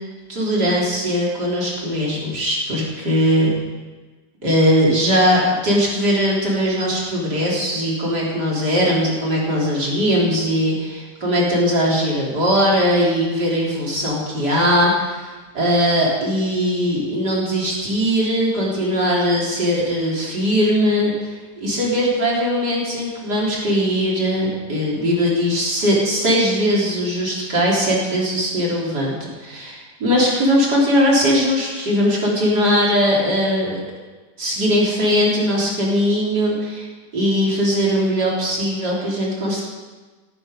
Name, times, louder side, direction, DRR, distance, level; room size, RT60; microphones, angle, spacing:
voice 1, 0.3-3.5 4.4-29.1 29.4-33.8 34.4-36.9 37.1-39.6, equal, 80° right, -4 dB, 4.5 m, -20 dB
19.0 x 13.0 x 5.3 m, 1.3 s
omnidirectional pair, 1.7 m